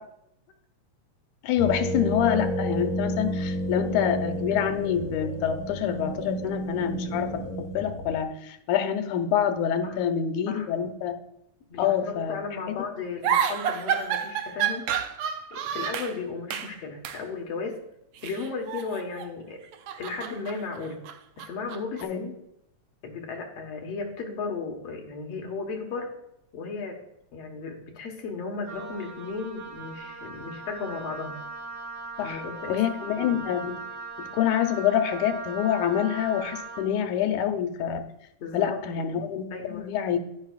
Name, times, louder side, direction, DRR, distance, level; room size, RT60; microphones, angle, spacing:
voice 1, 1.4-11.2 11.8-12.4 12.7-12.8 22.0-22.2 32.2-33.8 34.2-38.0 38.5-40.2, left 9 dB, 85° left, 6 dB, 2.3 m, -26 dB
sound 1, 1.6-8.2, right 1 dB, 15° left, 2.4 m, -31 dB
voice 2, 11.7-14.9 15.5-17.8 18.2-19.6 20.0-21.1 21.4-22.4 23.0-26.1 26.5-27.0 27.3-31.4 32.2-32.8 33.2-33.4 38.4-38.8 39.5-39.9, left 4 dB, 60° left, 2 dB, 2.4 m, -35 dB
sound 2, 13.2-16.2 16.5-16.8 17.0-17.2 18.2-19.3 19.6-22.0, right 8 dB, 85° right, 1.3 m, -30 dB
Wind instrument woodwind instrument, 28.6-36.9, right 4 dB, 60° right, 2.3 m, -39 dB
11.0 x 10.0 x 2.4 m, 0.81 s
omnidirectional pair, 3.4 m